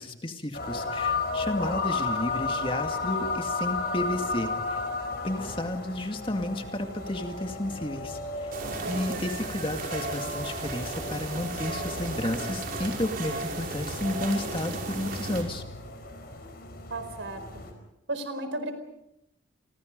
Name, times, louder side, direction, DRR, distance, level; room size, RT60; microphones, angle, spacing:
voice 1, 0.0-4.8 5.2-8.5 8.9-15.6, left 1 dB, 25° left, 5 dB, 2.2 m, -32 dB
sound 1, 0.5-17.7, left 3 dB, 55° left, 5.0 m, -34 dB
sound 2, 8.5-15.4, right 2 dB, 50° right, 5.7 m, -35 dB
voice 2, 8.6-9.3 16.9-17.6 18.1-18.7, right 2 dB, 75° right, 9 dB, 4.6 m, -35 dB
30.0 x 24.5 x 5.4 m, 0.86 s
head